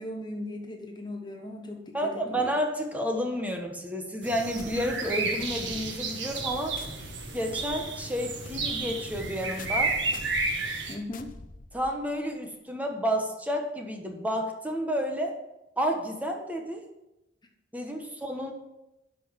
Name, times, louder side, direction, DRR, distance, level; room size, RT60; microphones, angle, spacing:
voice 1, 0.0-2.5 10.9-11.3, left 1 dB, 25° left, 2 dB, 1.0 m, -38 dB
voice 2, 1.9-6.7 7.3-10.0 11.7-15.3 15.8-16.8 17.7-18.5, equal, 10° right, 2 dB, 1.3 m, -30 dB
sound 1, 4.2-11.0, right 3 dB, 75° right, 1.6 m, -32 dB
sound 2, 4.6-12.2, left 3 dB, 50° left, 0.7 m, -46 dB
11.5 x 5.5 x 5.9 m, 0.92 s
head